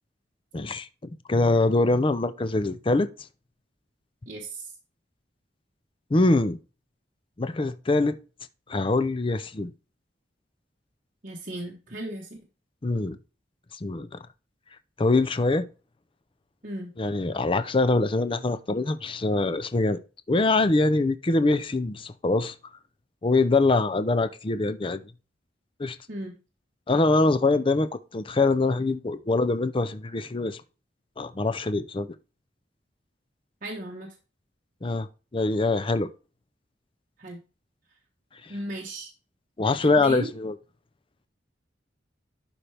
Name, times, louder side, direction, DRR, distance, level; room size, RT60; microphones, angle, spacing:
voice 1, 0.5-3.1 6.1-6.6 7.4-8.2 8.7-9.7 12.8-13.2 13.8-14.1 15.0-15.7 17.0-20.0 20.3-22.5 23.2-25.0 25.8-26.0 26.9-30.6 31.2-32.1 34.8-35.1 35.3-36.1 39.6-40.5, left 2 dB, 30° left, 0.5 m, -24 dB
voice 2, 4.3-4.7 11.2-12.4 16.6-16.9 26.1-26.4 33.6-34.1 37.2-37.4 38.5-39.1 39.7-40.3, right 1 dB, 50° right, 1.2 m, -36 dB
11.0 x 4.4 x 3.4 m
head